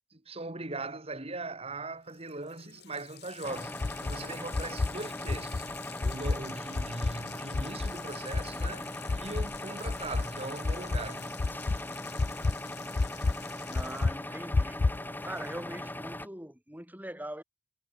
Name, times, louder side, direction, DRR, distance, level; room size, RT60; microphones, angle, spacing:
voice 1, 0.1-3.7 4.0-5.7 6.0-8.9 9.1-11.4, right 2 dB, 30° right, 2.3 m, -40 dB
Water tap faucet, 1.8-1.9 2.1-15.8, left 12 dB, 55° left, 4.4 m, -50 dB
sound 1, 3.4-16.3, left 1 dB, 10° left, 4.8 m, -40 dB
sound 2, 3.8-4.2 4.5-4.9 5.3-5.6 6.0-6.4 6.8-7.2 7.5-7.9 8.3-8.7 9.1-9.6 9.9-10.3 10.6-11.1 11.4-11.8 12.2-12.5 13.0-13.4 13.7-14.2 14.5-15.0, left 3 dB, 40° left, 0.5 m, -29 dB
voice 2, 13.7-14.8 15.2-17.4, right 1 dB, 10° right, 7.2 m, -42 dB
head